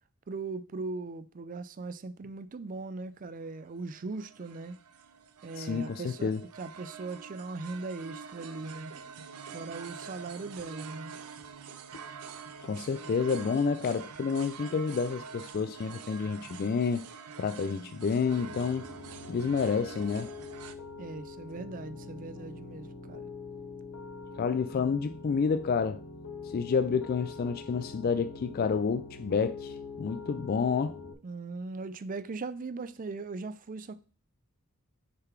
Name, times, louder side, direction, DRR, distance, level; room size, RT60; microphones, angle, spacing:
voice 1, 0.3-4.8 5.4-6.3 6.6-8.9 9.5-11.2 21.0-23.2 31.2-33.9, right 3 dB, 40° right, 0.4 m, -39 dB
sound 1, 3.7-20.8, right 6 dB, 90° right, 0.6 m, -46 dB
voice 2, 5.6-6.4 12.7-17.0 17.4-18.8 19.3-20.3 24.4-26.0 26.5-31.0, left 5 dB, 40° left, 0.3 m, -29 dB
Piano, 18.2-31.1, left 4 dB, 85° left, 0.9 m, -44 dB
6.5 x 3.9 x 4.4 m
head